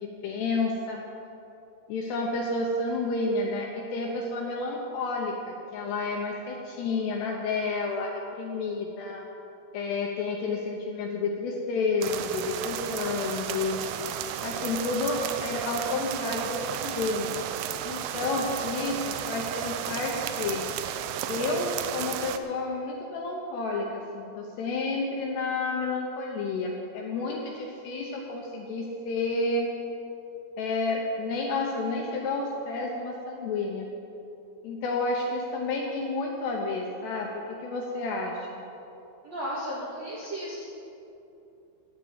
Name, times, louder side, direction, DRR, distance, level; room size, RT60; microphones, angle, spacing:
voice 1, 0.0-1.0 1.9-9.2 9.7-13.8 14.4-17.3 17.8-20.7 21.3-29.7 30.6-33.9 34.6-38.6, left 3 dB, 75° left, 0 dB, 2.6 m, -30 dB
sound 1, 12.0-22.4, right 10 dB, 85° right, 2.5 m, -33 dB
voice 2, 39.2-40.7, equal, 60° right, -7 dB, 1.8 m, -34 dB
12.5 x 8.1 x 8.2 m, 2.8 s
omnidirectional pair, 5.8 m